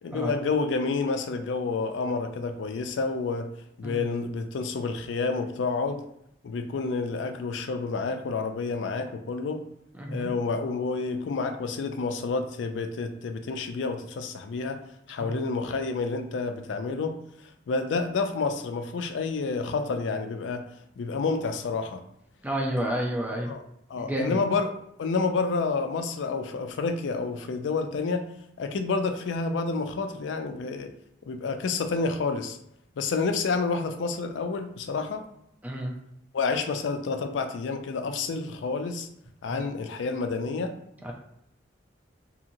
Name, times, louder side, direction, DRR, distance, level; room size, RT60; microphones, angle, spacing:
voice 1, 0.0-3.5 3.8-6.0 6.4-9.6 10.1-14.8 15.1-17.2 17.7-20.6 21.0-22.0 23.5-23.6 23.9-24.7 25.0-28.2 28.6-30.9 31.3-32.6 33.0-35.3 36.3-39.1 39.4-40.7, left 4 dB, 85° left, 7 dB, 0.4 m, -29 dB
voice 2, 10.0-10.3 15.2-15.3 22.4-23.5 24.0-24.4 35.6-35.9 39.5-39.7 41.0-41.1, right 1 dB, 10° right, -1 dB, 0.5 m, -30 dB
2.8 x 2.7 x 2.6 m, 0.76 s
head